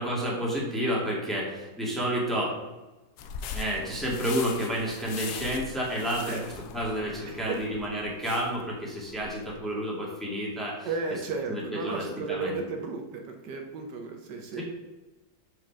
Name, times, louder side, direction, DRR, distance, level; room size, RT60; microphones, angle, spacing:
voice 1, 0.0-2.6 3.5-6.4 6.7-10.9 11.5-12.5 14.6-14.7, equal, ahead, -4 dB, 1.7 m, -30 dB
sound 1, 3.2-9.6, left 6 dB, 80° left, 1.3 m, -41 dB
voice 2, 7.3-7.6 10.8-14.6, right 4 dB, 75° right, 4 dB, 1.4 m, -34 dB
5.7 x 4.9 x 5.7 m, 1.1 s
omnidirectional pair, 1.9 m